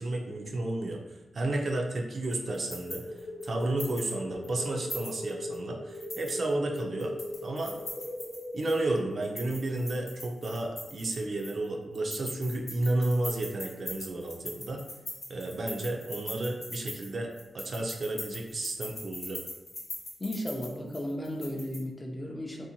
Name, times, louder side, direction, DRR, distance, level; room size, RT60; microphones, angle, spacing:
voice 1, 0.0-7.2 7.4-7.8 8.5-14.8 15.3-19.4, right 2 dB, 50° right, 1 dB, 0.4 m, -32 dB
sound 1, 2.3-4.1 4.4-4.5 4.9-5.6 5.9-8.8 9.2-11.7 11.9-21.8, left 1 dB, 45° left, 0.7 m, -42 dB
sound 2, 2.5-8.9, left 1 dB, 80° left, 0.5 m, -39 dB
voice 2, 20.2-22.7, left 1 dB, 15° left, 0 dB, 0.4 m, -35 dB
2.6 x 2.1 x 2.7 m, 1.0 s
wide cardioid pair, 110°, 0 cm